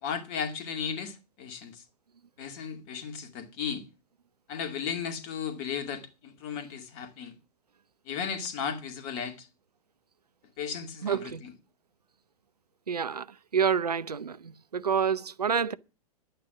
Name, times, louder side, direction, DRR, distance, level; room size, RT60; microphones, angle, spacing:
voice 1, 0.0-1.8 2.4-3.8 4.5-7.3 8.1-9.5 10.6-11.5, left 7 dB, 40° left, 2.3 m, -35 dB
voice 2, 11.0-11.4 12.9-13.3 13.5-15.7, right 7 dB, 75° right, 0.6 m, -28 dB
11.5 x 8.8 x 6.0 m
figure-of-eight pair, 100°, 20 cm